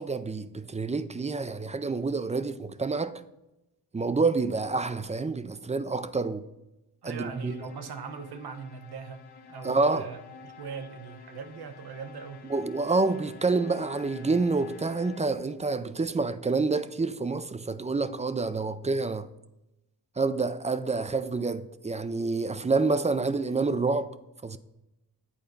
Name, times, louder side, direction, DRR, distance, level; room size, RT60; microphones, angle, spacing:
voice 1, 0.0-3.2 3.9-6.4 7.0-7.6 9.6-10.1 12.5-19.3 20.2-24.1 24.4-24.6, right 3 dB, 20° right, 0.4 m, -28 dB
voice 2, 7.0-12.5, right 5 dB, 85° right, 0.9 m, -40 dB
sound 1, 7.1-15.6, left 5 dB, 85° left, 1.1 m, -50 dB
8.7 x 4.5 x 5.3 m
wide cardioid pair, 85°, 38 cm